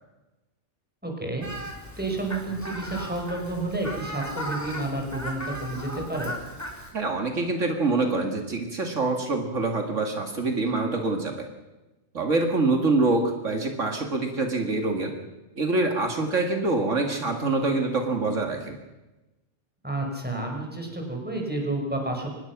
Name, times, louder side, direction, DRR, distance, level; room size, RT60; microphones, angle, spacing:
voice 1, 1.0-1.5 2.0-6.3 19.8-22.3, right 2 dB, 5° right, 1 dB, 5.2 m, -30 dB
Fowl, 1.4-6.9, equal, 10° left, 3.4 m, -37 dB
voice 2, 6.9-11.4 12.1-15.1 15.6-18.8, right 3 dB, 75° right, 3 dB, 2.5 m, -25 dB
25.0 x 19.5 x 6.0 m, 1.1 s
omnidirectional pair, 1.3 m